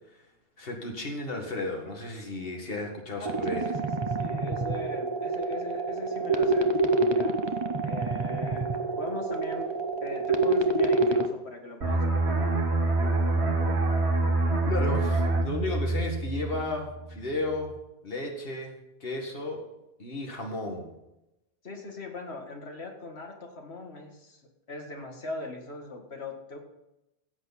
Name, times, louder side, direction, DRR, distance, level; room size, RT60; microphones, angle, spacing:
voice 1, 0.6-3.7 14.6-17.7 18.0-18.7 19.0-19.6 20.0-20.9, left 2 dB, 60° left, 1 dB, 2.2 m, -33 dB
voice 2, 3.2-6.8 7.1-7.4 7.8-8.6 9.0-9.7 10.0-12.6 21.6-24.4 24.7-26.6, left 2 dB, 80° left, 2 dB, 2.2 m, -40 dB
sound 1, 3.3-11.3, right 2 dB, 25° right, 0.8 m, -27 dB
sound 2, 11.8-17.2 17.5-17.8, right 2 dB, 85° right, 2.0 m, -26 dB
15.5 x 8.2 x 4.2 m, 0.90 s
omnidirectional pair, 1.1 m